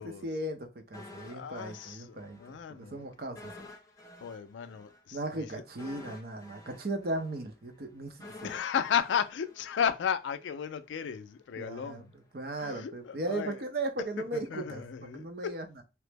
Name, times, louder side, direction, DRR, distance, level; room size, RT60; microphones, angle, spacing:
voice 1, 0.0-3.5 5.1-8.5 11.6-15.8, right 2 dB, 55° right, 0.6 m, -37 dB
sound 1, 0.9-2.6 2.8-3.0 3.4-10.4 10.7-10.9, left 2 dB, 20° left, 0.5 m, -50 dB
voice 2, 1.3-3.1 4.2-5.5 8.4-12.1 12.6-13.6 14.3-15.6, left 8 dB, 90° left, 0.3 m, -34 dB
2.9 x 2.0 x 3.3 m
head